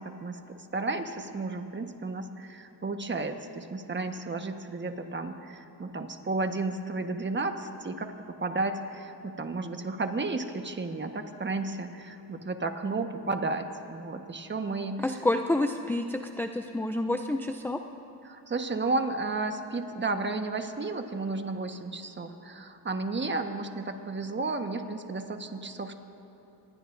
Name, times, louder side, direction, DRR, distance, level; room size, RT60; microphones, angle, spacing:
voice 1, 0.0-8.1 8.4-15.0 18.2-25.9, right 3 dB, 25° right, 6 dB, 1.3 m, -33 dB
voice 2, 15.0-17.8, left 2 dB, 5° left, 6 dB, 0.5 m, -28 dB
26.5 x 20.0 x 2.6 m, 3.0 s
cardioid pair, 90°, 43 cm